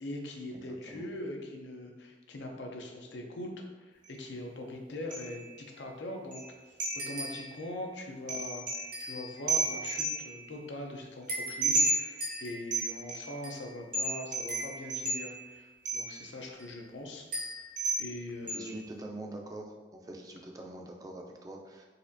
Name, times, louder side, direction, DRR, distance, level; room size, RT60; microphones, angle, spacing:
voice 1, 0.0-6.8 7.1-17.3 18.0-18.7, left 1 dB, 80° left, 2 dB, 0.5 m, -42 dB
sound 1, 4.0-4.1 5.1-5.5 5.8-5.9 6.3-6.5 6.8-7.5 8.3-10.5 11.3-13.6 13.9-15.5 15.8-16.2 16.6-16.7 17.3-18.1 18.5-18.8, right 2 dB, 50° right, 0.7 m, -33 dB
voice 2, 18.4-19.7 20.0-21.9, right 1 dB, 20° right, 1 dB, 0.3 m, -44 dB
4.0 x 2.5 x 2.6 m, 1.2 s
head